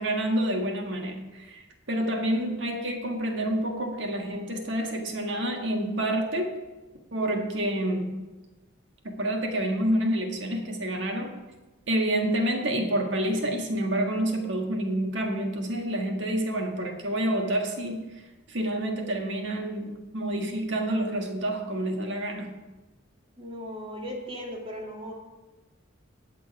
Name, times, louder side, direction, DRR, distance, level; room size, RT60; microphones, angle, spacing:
voice 1, 0.0-6.5 7.1-8.1 9.0-11.3 11.9-18.1 18.5-22.5, right 1 dB, 65° right, 3 dB, 1.7 m, -28 dB
voice 2, 23.4-25.1, equal, 25° right, -1 dB, 2.2 m, -37 dB
18.0 x 6.1 x 4.7 m, 1.1 s
head